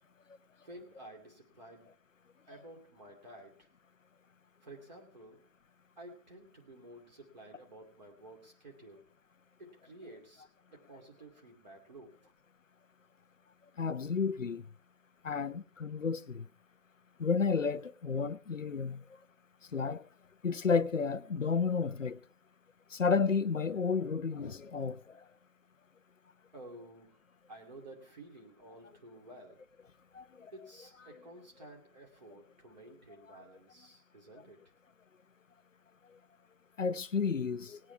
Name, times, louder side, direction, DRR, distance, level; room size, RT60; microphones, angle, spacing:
voice 1, 0.6-1.9 2.5-3.7 4.6-5.4 6.0-9.1 9.6-12.3 26.5-27.2 27.5-29.7 30.5-34.6, right 1 dB, 25° right, 2.6 m, -52 dB
voice 2, 13.8-14.6 15.2-16.5 17.2-19.0 19.7-20.0 20.4-22.2 22.9-25.0 30.1-30.5 36.8-37.8, left 5 dB, 55° left, 0.8 m, -31 dB
19.0 x 8.7 x 4.6 m
figure-of-eight pair, 170°, 46 cm